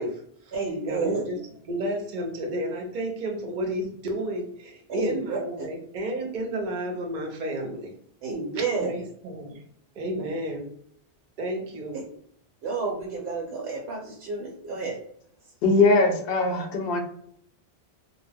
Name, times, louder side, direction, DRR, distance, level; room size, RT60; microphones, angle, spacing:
voice 1, 0.0-0.5 0.9-1.4 1.6-7.9 8.5-9.6 10.0-10.7 11.4-12.0, right 1 dB, 50° right, 2 dB, 0.7 m, -31 dB
voice 2, 0.5-1.2 4.9-5.7 8.2-8.9 11.9-12.0 12.6-15.0, right 4 dB, 80° right, -2 dB, 0.9 m, -30 dB
voice 3, 15.6-17.0, left 3 dB, 65° left, 4 dB, 0.7 m, -21 dB
2.2 x 2.0 x 3.3 m, 0.65 s
omnidirectional pair, 1.1 m